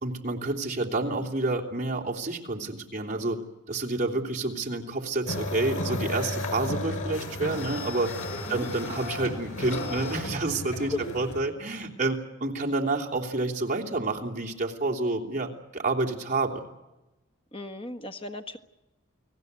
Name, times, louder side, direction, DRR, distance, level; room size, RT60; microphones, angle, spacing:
voice 1, 0.0-3.4 3.7-8.2 8.5-16.6, right 2 dB, 40° right, 0 dB, 3.2 m, -29 dB
sound 1, 5.3-11.4, left 1 dB, 90° left, 7.4 m, -33 dB
voice 2, 17.5-18.6, left 2 dB, 30° left, 6 dB, 1.5 m, -35 dB
30.0 x 18.5 x 8.2 m, 1.0 s
head